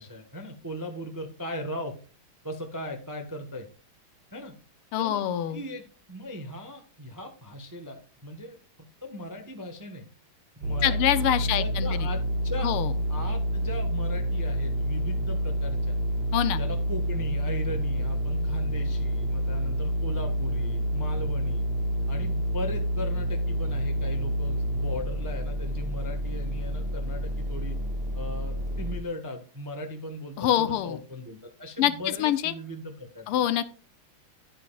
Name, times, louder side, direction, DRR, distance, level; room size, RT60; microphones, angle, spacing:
voice 1, 0.0-1.9 2.4-3.7 4.3-4.5 5.0-5.2 5.5-8.6 9.0-10.0 10.6-12.7 13.1-16.0 16.6-21.7 22.1-27.8 28.1-33.3, left 1 dB, 20° right, 4 dB, 0.5 m, -38 dB
voice 2, 4.9-5.6 10.8-12.1 12.6-12.9 16.3-16.6 30.4-31.0 31.8-32.5 33.3-33.7, left 11 dB, 80° left, 13 dB, 1.6 m, -25 dB
sound 1, 10.6-29.0, equal, 85° right, 2.4 m, -28 dB
10.5 x 9.3 x 2.3 m, 0.38 s
omnidirectional pair, 2.4 m